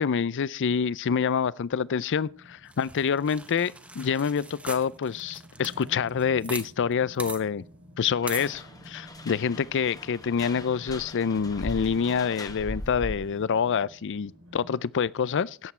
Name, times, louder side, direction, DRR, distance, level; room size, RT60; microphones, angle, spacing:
voice 1, 0.0-7.6 8.0-15.7, left 6 dB, 55° left, 0.4 m, -27 dB
sound 1, 2.2-14.8, equal, 80° right, 4.4 m, -51 dB
sound 2, 2.7-6.7 6.9-7.0 7.2-7.4 8.3-8.5, right 2 dB, 5° right, 1.1 m, -40 dB
sound 3, 8.2-13.4, left 1 dB, 15° left, 1.2 m, -40 dB
17.0 x 8.2 x 4.4 m
head